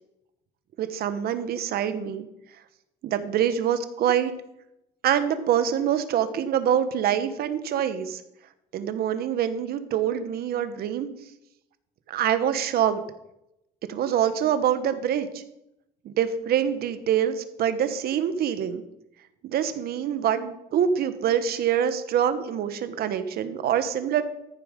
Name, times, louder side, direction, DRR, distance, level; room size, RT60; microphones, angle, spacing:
voice 1, 0.8-2.3 3.0-4.3 5.0-8.2 8.7-11.1 12.1-13.0 13.9-15.4 16.0-18.8 19.4-24.2, right 9 dB, 65° right, 10 dB, 1.2 m, -25 dB
14.0 x 7.0 x 5.1 m, 0.84 s
cardioid pair, 110°, 17 cm